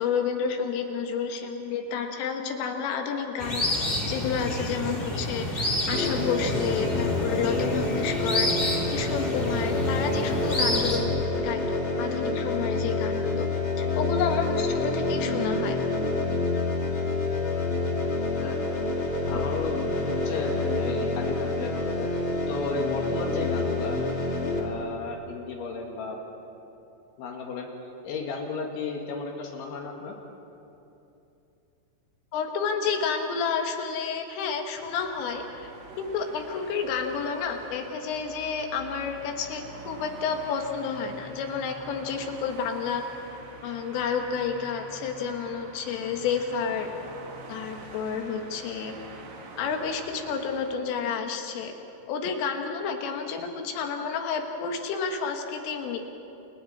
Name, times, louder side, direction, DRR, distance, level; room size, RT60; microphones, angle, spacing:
voice 1, 0.0-3.6 4.1-11.1 11.4-13.5 13.8-15.8 32.3-35.7 36.0-43.0 43.6-46.9 47.5-48.9 49.6-51.7 52.1-56.0, left 6 dB, 90° left, 4 dB, 4.3 m, -30 dB
sound 1, 3.4-11.0, left 1 dB, 20° left, 1.5 m, -29 dB
sound 2, 5.9-24.6, left 2 dB, 35° left, 2.1 m, -28 dB
voice 2, 19.3-22.1 22.5-24.0 24.6-26.2 27.2-27.7 28.0-30.2, left 4 dB, 70° left, 1 dB, 4.3 m, -34 dB
sound 3, 34.7-50.8, right 3 dB, 85° right, 5.2 m, -46 dB
29.0 x 28.0 x 4.3 m, 2.9 s
omnidirectional pair, 5.6 m